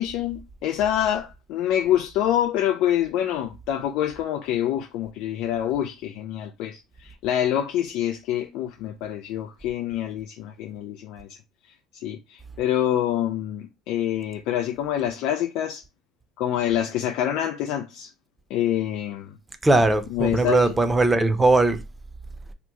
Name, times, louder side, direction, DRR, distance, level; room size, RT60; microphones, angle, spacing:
voice 1, 0.0-11.3 11.9-15.8 16.4-18.1 18.5-19.3 20.1-20.8, left 11 dB, 70° left, 0.4 m, -26 dB
voice 2, 19.6-21.8, right 2 dB, 15° right, 0.6 m, -19 dB
2.9 x 2.1 x 3.5 m
hypercardioid pair, 70°, 0 cm